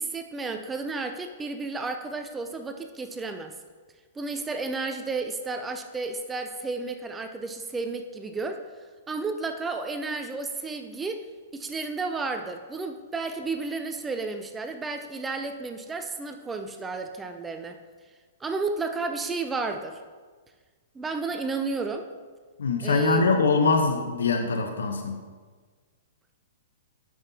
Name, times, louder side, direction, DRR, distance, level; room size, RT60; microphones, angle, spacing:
voice 1, 0.0-3.5 4.2-8.6 9.1-11.3 11.5-17.8 18.4-20.0 20.9-22.1 22.8-23.3, right 3 dB, 10° right, 6 dB, 0.4 m, -32 dB
voice 2, 22.6-25.2, left 4 dB, 85° left, 5 dB, 0.8 m, -23 dB
9.0 x 5.9 x 2.8 m, 1.5 s
hypercardioid pair, 135°, 0 cm